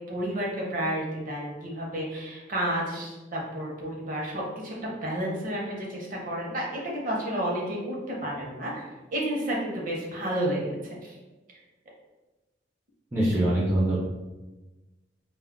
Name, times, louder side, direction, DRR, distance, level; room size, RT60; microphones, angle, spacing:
voice 1, 0.1-7.9 8.2-8.8 9.1-11.1, right 1 dB, 45° right, -3 dB, 0.6 m, -31 dB
voice 2, 13.1-14.0, right 1 dB, 10° right, -6 dB, 0.4 m, -23 dB
2.2 x 2.0 x 3.5 m, 1.1 s
head